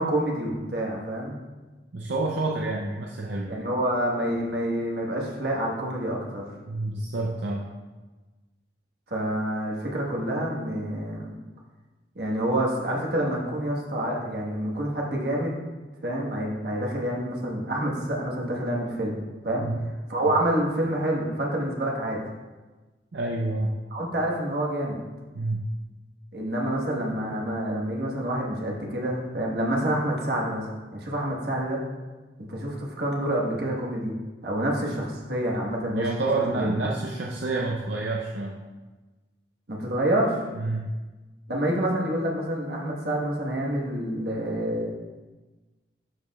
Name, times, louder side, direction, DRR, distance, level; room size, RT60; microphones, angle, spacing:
voice 1, 0.0-1.4 3.5-6.4 9.1-11.3 12.1-15.5 16.0-19.7 20.1-22.2 23.9-25.0 26.3-30.6 30.9-31.8 32.4-34.1 34.4-36.1 36.5-36.8 39.7-40.4 41.5-44.9, right 1 dB, 70° right, -2 dB, 1.4 m, -27 dB
voice 2, 1.9-3.5 6.7-7.7 19.6-19.8 23.1-23.8 25.3-25.7 36.0-38.6 40.5-40.9, right 2 dB, 85° right, -1 dB, 0.6 m, -28 dB
11.0 x 4.9 x 2.4 m, 1.2 s
head